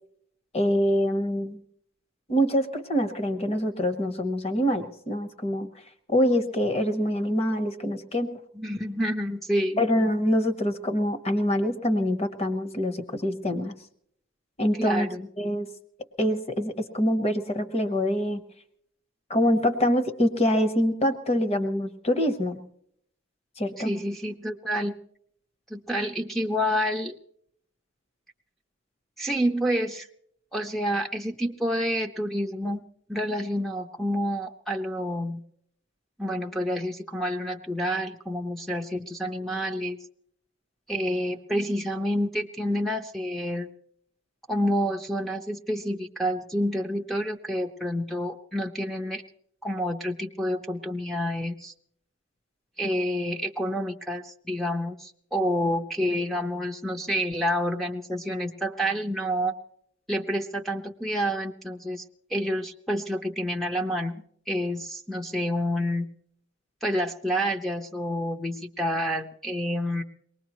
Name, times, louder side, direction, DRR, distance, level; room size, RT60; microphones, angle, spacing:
voice 1, 0.5-1.6 2.3-5.7 6.1-8.4 9.8-13.7 14.6-15.1 15.4-15.7 16.2-18.4 19.3-22.6 23.6-23.9, equal, 30° left, 8 dB, 1.1 m, -25 dB
voice 2, 8.5-9.8 14.8-15.3 23.8-24.9 25.7-27.2 29.2-30.1 30.5-32.8 33.1-35.4 36.2-40.0 40.9-43.7 44.5-49.2 49.6-51.7 52.8-59.5 60.1-62.0 62.3-66.1 66.8-70.0, equal, ahead, 0 dB, 0.6 m, -28 dB
23.5 x 19.5 x 3.1 m, 0.68 s
head